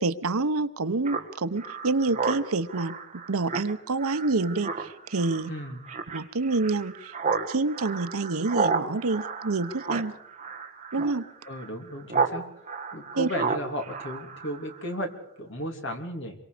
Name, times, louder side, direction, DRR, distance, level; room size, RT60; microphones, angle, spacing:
voice 1, 0.0-2.9 3.3-5.5 6.1-7.1 7.5-10.1 10.9-11.3 13.1-13.3, right 3 dB, 85° right, 13 dB, 0.9 m, -27 dB
Speech synthesizer, 1.0-12.4 12.7-14.9, right 5 dB, 30° right, 1.8 m, -32 dB
voice 2, 5.5-5.8 11.5-12.4 12.9-15.1 15.4-16.3, equal, 55° left, 4 dB, 3.1 m, -34 dB
26.5 x 23.5 x 5.1 m, 0.72 s
head